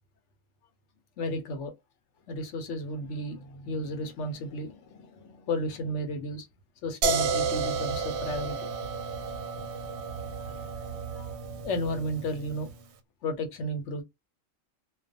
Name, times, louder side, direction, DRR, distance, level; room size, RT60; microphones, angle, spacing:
voice 1, 1.2-1.7 2.3-6.5 6.8-8.7 10.4-10.6 11.1-11.3 11.6-12.7 13.2-14.0, left 1 dB, 70° left, 0.9 m, -33 dB
sound 1, 7.0-12.8, right 4 dB, 65° right, 0.8 m, -32 dB
2.3 x 2.2 x 2.5 m
omnidirectional pair, 1.3 m